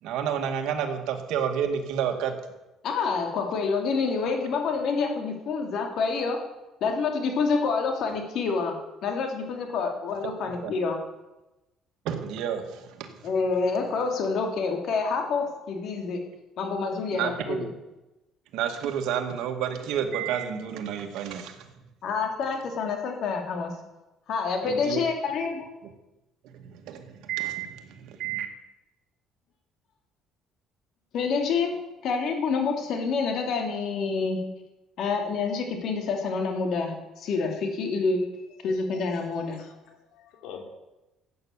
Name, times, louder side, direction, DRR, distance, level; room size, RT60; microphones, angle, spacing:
voice 1, 0.0-2.3 10.6-10.7 12.1-13.1 17.1-17.7 18.5-21.7 24.6-25.0 26.5-28.5, right 8 dB, 80° right, 5 dB, 2.0 m, -30 dB
voice 2, 2.8-6.4 6.8-8.7 9.0-11.0 13.2-16.2 16.6-17.7 22.0-23.7 24.3-25.7 31.1-34.4 35.0-38.2 38.6-39.6, left 4 dB, 60° left, 3 dB, 3.0 m, -27 dB
voice 3, 38.7-39.1 39.4-40.6, left 7 dB, 85° left, 3 dB, 3.0 m, -46 dB
14.5 x 8.7 x 7.3 m, 1.0 s
cardioid pair, 115°, 0 cm